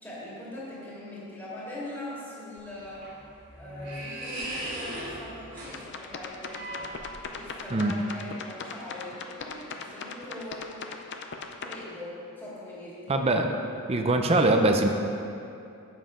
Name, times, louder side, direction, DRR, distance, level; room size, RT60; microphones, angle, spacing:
voice 1, 0.0-3.1 3.6-6.9 7.3-10.8 11.6-13.2, left 1 dB, 10° left, -9 dB, 2.0 m, -41 dB
sound 1, 2.6-7.5, right 1 dB, 50° right, 2.1 m, -38 dB
sound 2, 5.6-11.8, left 5 dB, 50° left, 0.6 m, -39 dB
voice 2, 13.1-13.5 13.9-14.9, right 2 dB, 25° right, 4 dB, 0.5 m, -22 dB
7.9 x 7.4 x 5.0 m, 2.7 s
head